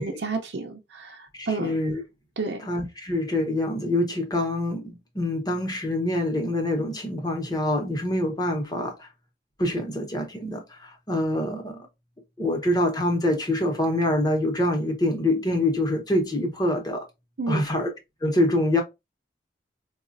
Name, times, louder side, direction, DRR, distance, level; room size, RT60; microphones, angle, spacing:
voice 1, 0.0-1.8 2.4-2.6 17.4-17.7, right 3 dB, 80° right, 0.6 m, -31 dB
voice 2, 1.3-2.0 2.7-9.1 9.6-11.9 12.4-17.0 17.5-17.9 18.2-18.8, left 1 dB, 20° left, 0.9 m, -25 dB
4.8 x 2.3 x 2.5 m
head